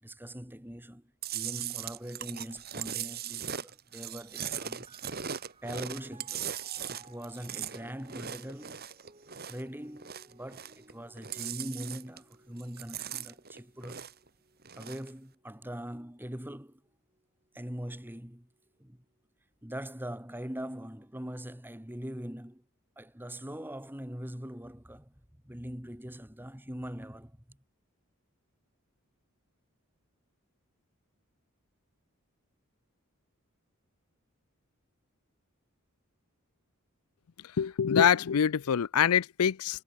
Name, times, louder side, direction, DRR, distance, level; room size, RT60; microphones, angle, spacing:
voice 1, 0.0-4.9 5.6-6.4 6.9-8.8 9.5-14.1 14.8-16.8 17.5-18.5 18.8-19.0 19.6-22.6 23.0-25.1 25.4-27.6, equal, 10° right, 2.6 m, -42 dB
Chewing mastication, 1.2-9.7 10.0-10.9 11.2-12.3 12.6-14.3 14.6-15.1, right 9 dB, 45° right, 3.2 m, -39 dB
sound 1, 4.3-17.6 18.4-19.2, right 3 dB, 30° right, 5.0 m, -61 dB
voice 2, 37.6-39.8, left 8 dB, 90° left, 0.5 m, -25 dB
head